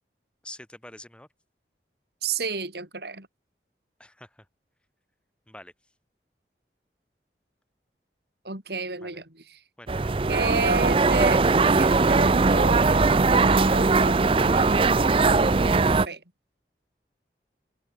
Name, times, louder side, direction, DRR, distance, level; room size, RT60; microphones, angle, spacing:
voice 1, 0.4-1.3 4.0-4.5 5.5-5.7 9.0-9.2 9.8-10.1, left 1 dB, 5° left, 2.8 m, -46 dB
voice 2, 2.2-3.3 8.4-9.6 10.3-16.2, right 3 dB, 65° right, 4.9 m, -32 dB
sound 1, 9.9-16.1, right 3 dB, 30° right, 0.5 m, -20 dB
head